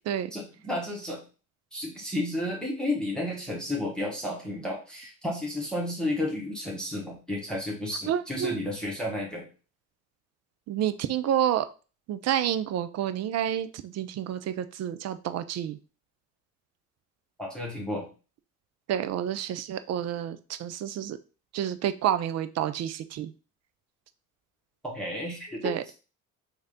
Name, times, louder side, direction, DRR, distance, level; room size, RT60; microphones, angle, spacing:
voice 1, 0.3-1.2 1.7-9.5 17.4-18.1 24.8-25.7, left 1 dB, ahead, -3 dB, 1.4 m, -32 dB
voice 2, 8.1-8.6 10.7-11.7 12.1-15.8 18.9-21.2 21.5-23.3 25.6-26.0, right 10 dB, 40° right, 12 dB, 0.4 m, -29 dB
3.2 x 2.8 x 3.6 m, 0.34 s
hypercardioid pair, 65°, 41 cm